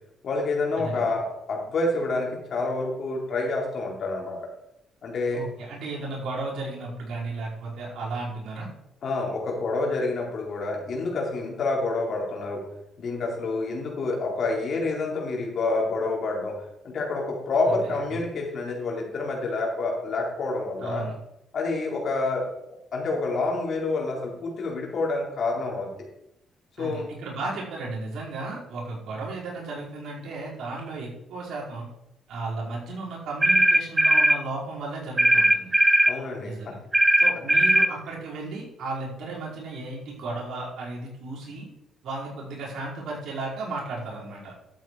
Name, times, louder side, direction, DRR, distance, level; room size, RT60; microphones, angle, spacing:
voice 1, 0.2-4.5 5.0-5.4 9.0-12.6 13.0-16.6 16.8-21.1 21.5-25.9 26.8-27.1 36.1-36.7, left 3 dB, 60° left, -1 dB, 4.1 m, -28 dB
voice 2, 5.3-8.7 20.8-21.1 26.8-31.8 32.3-35.7 36.4-36.8 37.2-41.7 42.0-44.5, right 3 dB, 75° right, -3 dB, 4.8 m, -34 dB
sound 1, 33.4-34.4 35.2-36.2 36.9-37.9, right 1 dB, 15° right, 0.5 m, -18 dB
12.0 x 8.3 x 4.8 m, 0.81 s
cardioid pair, 90°, 0 cm